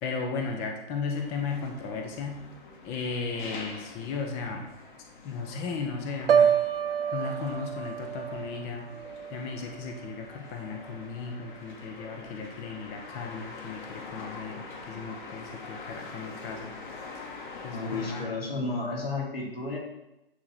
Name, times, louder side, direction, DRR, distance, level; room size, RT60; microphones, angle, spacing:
voice 1, 0.0-2.4 2.8-4.7 5.2-6.5 7.1-8.9 9.3-16.7 17.6-18.2, left 4 dB, 10° left, 3 dB, 0.3 m, -35 dB
sound 1, 1.1-18.2, left 3 dB, 50° left, 1.4 m, -45 dB
Piano, 6.3-10.2 10.6-11.0, right 8 dB, 70° right, 0.6 m, -28 dB
voice 2, 17.7-19.8, left 3 dB, 75° left, -4 dB, 2.8 m, -32 dB
8.6 x 3.7 x 5.7 m, 0.93 s
figure-of-eight pair, 115°, 30 cm